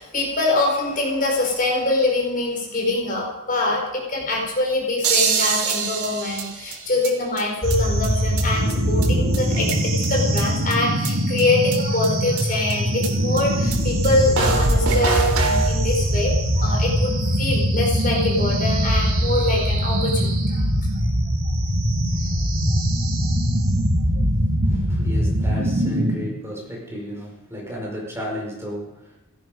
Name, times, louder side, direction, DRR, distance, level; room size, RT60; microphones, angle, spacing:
voice 1, 0.0-20.7, left 2 dB, 40° left, -1 dB, 5.0 m, -24 dB
sound 1, 5.0-7.1 7.4-7.5 7.7-7.8 8.0-8.1 8.4-8.5 8.7-8.8 9.0-9.1 9.3-10.1 10.4-10.5 10.7-10.8 11.0-11.1 11.4-11.5 11.7-11.8 12.0-12.1 12.4-12.5 12.7-12.8 13.0-13.1 13.4-13.5 13.7-13.8 14.0-14.1 14.4-15.7, right 5 dB, 85° right, 3.2 m, -23 dB
sound 2, 7.6-26.2, equal, 70° right, 3.5 m, -22 dB
voice 2, 24.6-29.1, left 1 dB, 10° right, -3 dB, 5.1 m, -33 dB
17.0 x 15.5 x 5.3 m, 0.98 s
head